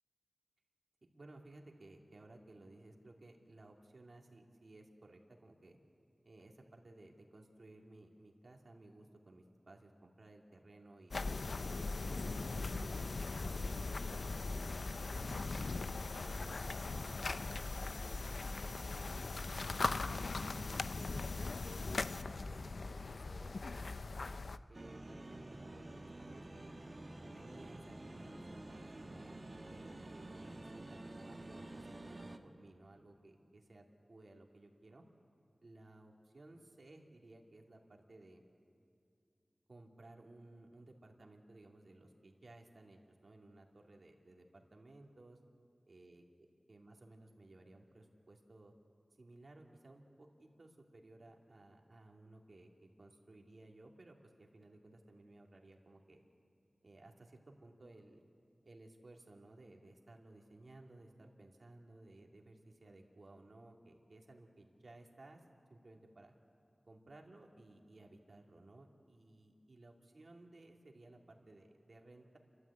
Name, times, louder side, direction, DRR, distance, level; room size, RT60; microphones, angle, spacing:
voice 1, 1.0-5.8 6.2-11.2 11.7-13.2 13.5-14.3 14.5-15.6 16.2-21.4 21.7-24.1 24.7-26.7 27.2-29.4 29.7-33.4 33.7-35.0 35.6-38.4 39.7-45.4 45.9-46.2 46.7-48.7 49.2-56.2 56.8-58.2 58.6-65.4 65.7-66.3 66.9-72.4, right 2 dB, 70° right, 1 dB, 2.4 m, -58 dB
sound 1, 11.1-24.6, left 3 dB, 85° left, 0.5 m, -40 dB
sound 2, 24.7-32.4, right 2 dB, 45° right, 1.4 m, -49 dB
30.0 x 12.5 x 8.4 m, 2.4 s
wide cardioid pair, 70°, 0 cm